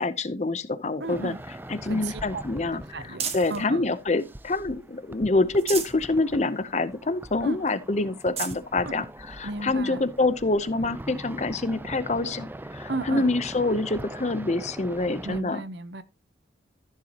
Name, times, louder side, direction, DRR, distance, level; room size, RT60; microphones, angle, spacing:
voice 1, 0.0-1.3 1.7-2.8 3.3-15.6, left 2 dB, 35° left, 0.7 m, -26 dB
sound 1, 1.0-3.7 4.2-5.0 5.4-6.1 6.5-6.6 7.0-7.1 7.7-7.8 8.1-8.6 9.4-9.5 11.3-11.4, right 7 dB, 30° right, 1.5 m, -37 dB
voice 2, 1.0-1.4 1.8-3.8 7.4-7.6 8.8-9.0 9.4-10.1 12.9-13.3 15.2-16.0, right 3 dB, 60° right, 0.8 m, -35 dB
sound 2, 1.1-15.4, right 1 dB, 10° right, 0.4 m, -42 dB
13.5 x 7.3 x 2.9 m
head